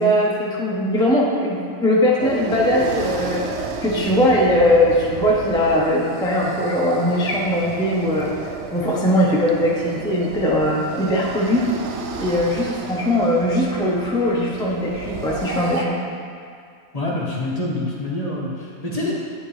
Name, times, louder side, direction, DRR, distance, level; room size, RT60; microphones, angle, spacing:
voice 1, 0.0-8.3 8.7-11.7 12.2-16.0, left 1 dB, 5° left, -4 dB, 0.5 m, -20 dB
sound 1, 2.2-15.9, right 5 dB, 65° right, 0.8 m, -32 dB
voice 2, 16.9-19.1, left 2 dB, 30° left, -5 dB, 0.9 m, -26 dB
8.9 x 6.5 x 3.2 m, 2.2 s
omnidirectional pair, 1.5 m